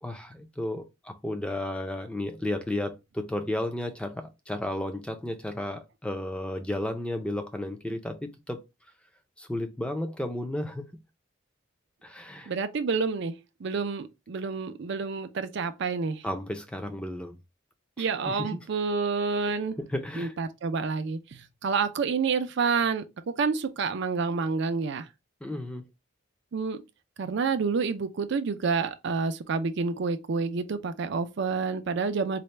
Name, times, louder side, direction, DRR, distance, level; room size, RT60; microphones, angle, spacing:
voice 1, 0.0-8.2 8.5-8.6 9.4-10.8 12.0-12.5 16.2-17.4 18.0-18.6 19.8-20.3 25.4-25.9, left 1 dB, 5° left, 0.5 m, -33 dB
voice 2, 12.5-13.4 13.6-16.2 18.0-19.8 20.2-25.1 26.5-26.8 27.2-32.4, right 5 dB, 60° right, 0.4 m, -28 dB
4.1 x 2.2 x 3.2 m
head